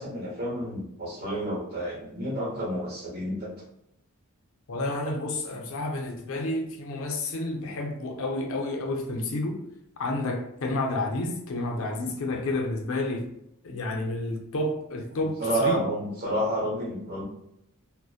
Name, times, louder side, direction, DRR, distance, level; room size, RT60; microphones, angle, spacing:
voice 1, 0.0-3.5 15.4-17.2, right 1 dB, 45° right, -4 dB, 1.0 m, -30 dB
voice 2, 4.7-9.6 10.0-13.3 13.6-15.8, left 2 dB, 65° left, 2 dB, 0.5 m, -30 dB
2.7 x 2.0 x 2.3 m, 0.78 s
head